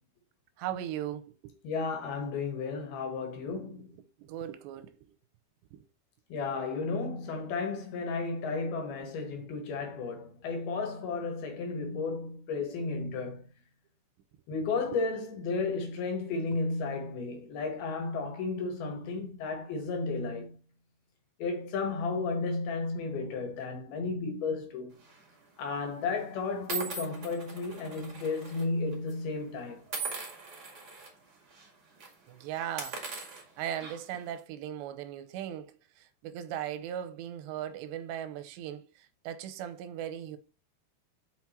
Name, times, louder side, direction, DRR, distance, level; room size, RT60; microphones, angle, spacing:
voice 1, 0.6-1.6 3.5-3.6 4.2-4.9 5.7-5.8 16.5-16.6 32.3-33.0 33.6-38.9 39.2-40.4, right 10 dB, 90° right, 2.9 m, -38 dB
voice 2, 1.6-3.9 6.3-13.4 14.5-20.6 21.4-25.0 25.6-29.8, left 4 dB, 70° left, 3.1 m, -33 dB
sound 1, 25.0-25.3 26.1-26.2 26.7-28.6 28.9-29.1 29.9-31.1 31.5-31.7 32.0-32.1 32.6-34.2, right 4 dB, 45° right, 1.3 m, -40 dB
6.0 x 5.9 x 4.4 m
omnidirectional pair, 5.0 m